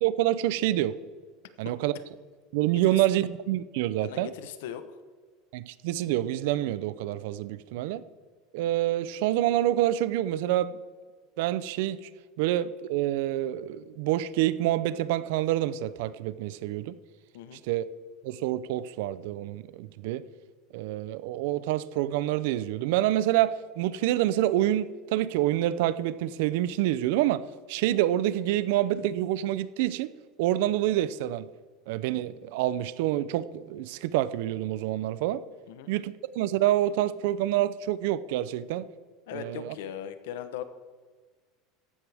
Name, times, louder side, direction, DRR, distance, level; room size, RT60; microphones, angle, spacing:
voice 1, 0.0-1.0 1.6-2.0 2.5-4.3 5.5-8.0 8.5-10.8 11.4-12.1 12.4-17.0 17.7-17.8 18.2-20.2 20.7-27.4 27.7-30.1 30.4-31.5 31.9-35.4 35.9-38.9 39.3-39.7, right 13 dB, 75° right, 0.5 m, -27 dB
voice 2, 4.0-4.8 17.3-17.6 35.7-35.9 39.3-40.6, left 10 dB, 85° left, 0.9 m, -39 dB
14.5 x 11.0 x 3.5 m
supercardioid pair, 150°, 0 cm